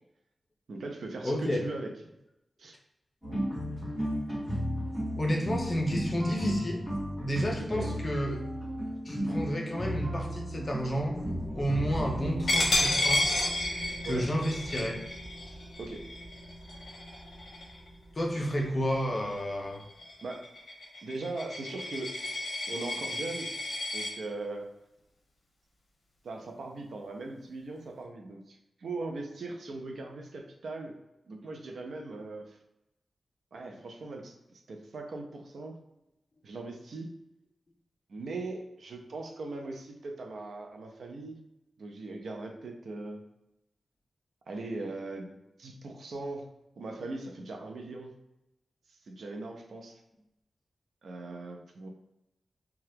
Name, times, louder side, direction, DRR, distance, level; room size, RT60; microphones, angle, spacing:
voice 1, 0.7-1.9 2.6-2.8 7.6-7.9 14.0-14.3 15.8-16.1 20.2-20.5 21.0-22.2 22.7-23.5 23.9-24.7 26.2-30.9 31.3-32.6 33.5-34.4 34.7-35.8 36.4-37.1 38.1-41.4 41.8-43.2 44.5-46.5 46.8-48.1 49.1-50.0 51.0-51.9, right 2 dB, 70° right, 3 dB, 0.4 m, -39 dB
voice 2, 1.2-1.6 5.2-6.9 7.2-8.4 9.0-11.2 11.5-13.3 14.0-15.0 18.1-19.8, equal, 30° left, 1 dB, 0.5 m, -31 dB
sound 1, 3.2-12.5, equal, 15° right, 1.3 m, -34 dB
sound 2, 9.8-19.8, equal, 5° left, 0.9 m, -43 dB
Coin (dropping), 12.5-17.9 18.3-18.6 19.0-24.1, left 2 dB, 70° left, 0.7 m, -32 dB
2.8 x 2.3 x 3.3 m, 0.90 s
wide cardioid pair, 155°, 0 cm